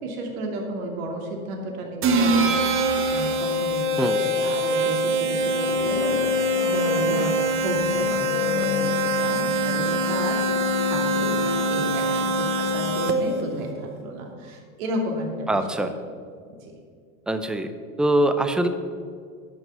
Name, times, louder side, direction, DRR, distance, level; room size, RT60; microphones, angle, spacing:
voice 1, 0.0-3.9 4.2-15.9 16.4-16.8, right 2 dB, 65° right, 1 dB, 2.7 m, -33 dB
sound 1, 2.0-13.4, right 1 dB, 30° right, 1.1 m, -24 dB
sound 2, 5.1-13.8, left 10 dB, 60° left, 0.9 m, -33 dB
voice 2, 15.5-15.9 17.3-17.7 18.0-18.7, right 1 dB, ahead, 9 dB, 0.4 m, -23 dB
11.0 x 5.9 x 8.0 m, 2.1 s
hypercardioid pair, 110°, 45 cm